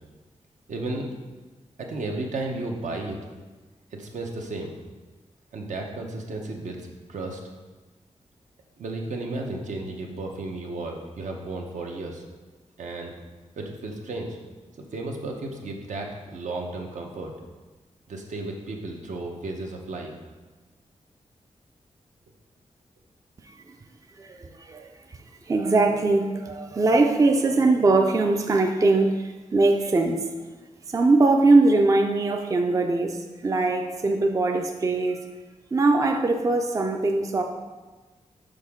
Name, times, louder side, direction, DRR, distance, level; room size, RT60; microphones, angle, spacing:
voice 1, 0.7-1.1 1.8-3.2 4.0-4.7 5.5-6.8 7.1-7.4 8.8-12.2 12.8-13.1 13.6-14.4 14.9-17.3 18.1-20.1, right 2 dB, 80° right, 1 dB, 0.9 m, -33 dB
voice 2, 24.2-24.9 25.5-30.3 30.9-35.2 35.7-37.4, right 3 dB, 25° right, 4 dB, 0.4 m, -21 dB
6.4 x 5.1 x 3.6 m, 1.3 s
wide cardioid pair, 145°, 13 cm